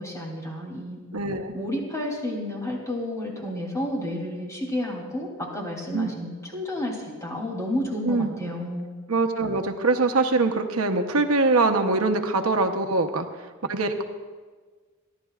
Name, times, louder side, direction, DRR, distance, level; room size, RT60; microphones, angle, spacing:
voice 1, 0.0-1.0 1.5-8.9, left 1 dB, 15° left, -2 dB, 3.1 m, -31 dB
voice 2, 1.1-1.6 5.9-6.1 8.0-8.3 9.1-13.3 13.7-14.0, right 3 dB, 90° right, 5 dB, 0.9 m, -23 dB
29.0 x 11.5 x 2.4 m, 1.4 s
head